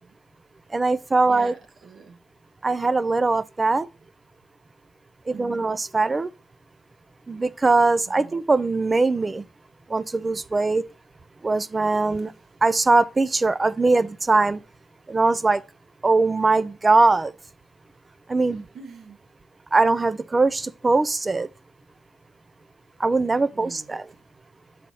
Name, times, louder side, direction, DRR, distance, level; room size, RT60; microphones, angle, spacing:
voice 1, 0.7-1.5 2.6-3.9 5.3-6.3 7.3-9.4 9.9-10.8 11.4-12.3 12.6-14.6 15.1-15.6 16.0-17.3 18.3-18.7 19.7-21.5 23.0-24.0, right 3 dB, 25° right, 0.4 m, -21 dB
voice 2, 1.2-2.2 5.3-5.8 8.1-8.4 12.1-12.3 18.5-19.2 23.5-24.2, right 5 dB, 55° right, 1.3 m, -45 dB
6.2 x 4.2 x 5.3 m
cardioid pair, 90°, 0 cm